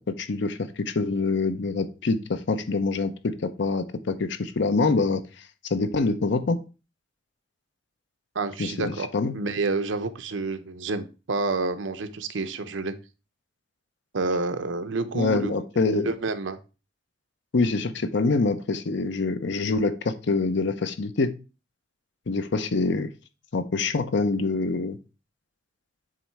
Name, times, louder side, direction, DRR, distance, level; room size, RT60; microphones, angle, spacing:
voice 1, 0.0-5.2 5.7-6.6 8.6-9.3 15.1-16.1 17.5-21.3 22.3-23.1 23.5-25.0, left 3 dB, 65° left, 11 dB, 0.6 m, -25 dB
voice 2, 8.3-9.1 9.3-12.9 14.1-15.5 16.1-16.6, right 3 dB, 80° right, 10 dB, 0.7 m, -28 dB
7.6 x 3.1 x 4.5 m, 0.32 s
head